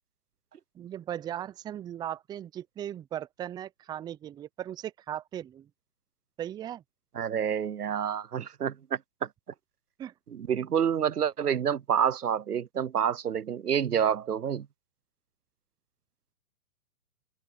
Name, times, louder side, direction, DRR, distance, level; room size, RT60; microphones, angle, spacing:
voice 1, 0.7-5.7 6.4-6.8 10.0-10.1, right 11 dB, 10° right, 0.6 m, -37 dB
voice 2, 7.1-9.0 10.3-14.7, right 8 dB, 90° right, 0.8 m, -28 dB
open air
hypercardioid pair, 125°, 45 cm